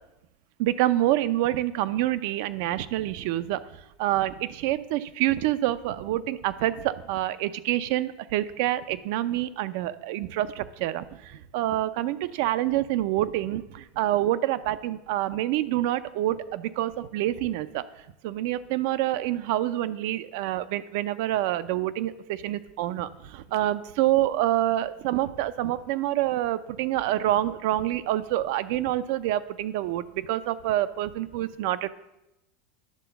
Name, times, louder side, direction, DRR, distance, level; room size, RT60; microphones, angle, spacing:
voice 1, 0.6-3.6 4.0-17.8 18.2-31.9, right 14 dB, 60° right, 14 dB, 0.5 m, -27 dB
10.5 x 3.9 x 6.9 m, 0.90 s
supercardioid pair, 150°, 0 cm